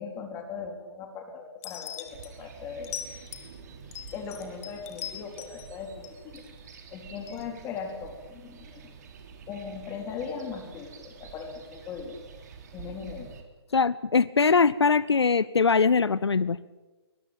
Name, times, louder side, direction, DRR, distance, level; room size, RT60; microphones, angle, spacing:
voice 1, 0.0-3.0 4.1-6.4 6.9-8.8 9.5-12.2 12.7-13.3, left 6 dB, 15° left, 4 dB, 3.8 m, -39 dB
sound 1, 1.6-2.3 2.8-3.5 3.9-5.7 6.0-6.8 7.3-7.4, left 10 dB, 35° left, 3.0 m, -40 dB
sound 2, 2.0-13.4, right 6 dB, 40° right, 3.6 m, -48 dB
voice 2, 13.7-16.6, left 5 dB, 75° left, 19 dB, 0.7 m, -22 dB
22.0 x 21.5 x 9.0 m, 1.2 s
figure-of-eight pair, 140°, 14 cm